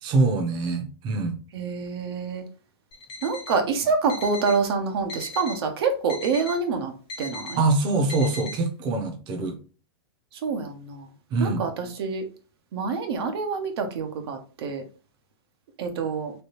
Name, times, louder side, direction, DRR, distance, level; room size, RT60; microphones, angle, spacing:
voice 1, 0.0-1.4 7.6-9.6 11.3-11.6, right 3 dB, 35° right, 5 dB, 0.7 m, -24 dB
voice 2, 1.5-2.4 3.2-6.9 7.2-7.6 10.4-11.1 11.4-12.2 12.7-14.8 15.8-16.3, right 4 dB, 65° right, 5 dB, 0.7 m, -26 dB
Alarm, 2.9-3.6 4.1-4.6 5.1-5.6 6.1-6.6 7.1-7.6 8.1-8.6, left 2 dB, 35° left, 1.0 m, -38 dB
3.2 x 2.3 x 2.9 m, 0.37 s
hypercardioid pair, 120°, 14 cm